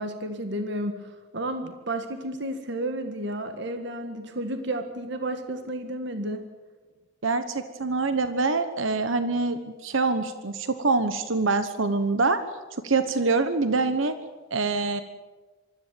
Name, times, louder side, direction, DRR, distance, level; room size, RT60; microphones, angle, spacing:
voice 1, 0.0-6.5, right 1 dB, 60° right, 7 dB, 1.7 m, -32 dB
voice 2, 7.2-12.4 12.8-14.1 14.5-15.0, right 3 dB, 80° right, 10 dB, 1.2 m, -25 dB
25.0 x 14.0 x 9.1 m, 1.3 s
head